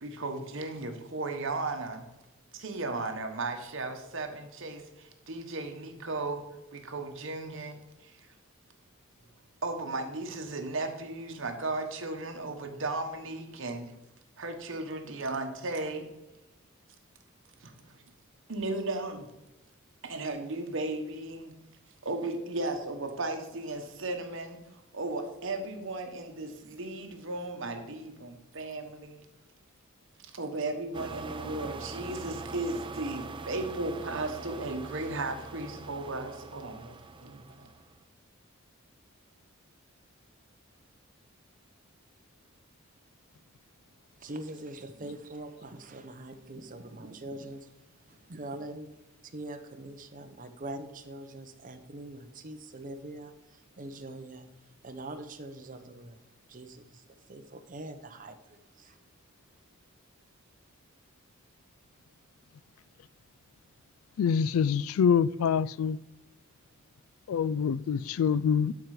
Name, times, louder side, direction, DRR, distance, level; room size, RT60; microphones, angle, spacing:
voice 1, 0.0-2.0 2.5-6.4 6.7-8.3 9.6-13.9 14.4-16.1 17.6-18.0 18.5-19.3 20.0-21.5 22.0-24.6 24.9-29.2 30.3-37.7, right 2 dB, 65° right, 1.2 m, -35 dB
sound 1, 30.9-38.0, right 3 dB, 25° right, 0.4 m, -43 dB
voice 2, 44.2-47.7 48.1-48.9 49.3-54.5 54.8-56.2 56.5-59.0, right 1 dB, 40° right, 0.8 m, -43 dB
voice 3, 64.2-66.0 67.3-68.7, left 7 dB, 80° left, 0.3 m, -25 dB
12.0 x 4.7 x 4.9 m
head